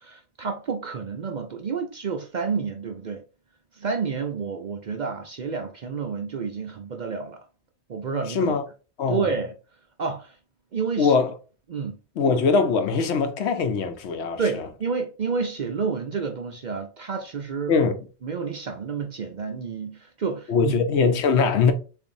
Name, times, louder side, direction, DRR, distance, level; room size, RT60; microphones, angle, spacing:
voice 1, 0.0-3.2 3.7-7.5 7.9-8.5 9.1-9.5 10.0-10.4 10.7-11.1 11.7-12.0 14.4-17.7 18.2-20.8, right 5 dB, 50° right, 0.6 m, -29 dB
voice 2, 8.3-8.6 9.0-9.3 11.0-11.3 12.2-14.6 17.7-18.0 20.5-21.7, left 5 dB, 75° left, 0.9 m, -22 dB
6.9 x 2.5 x 2.6 m
omnidirectional pair, 1.2 m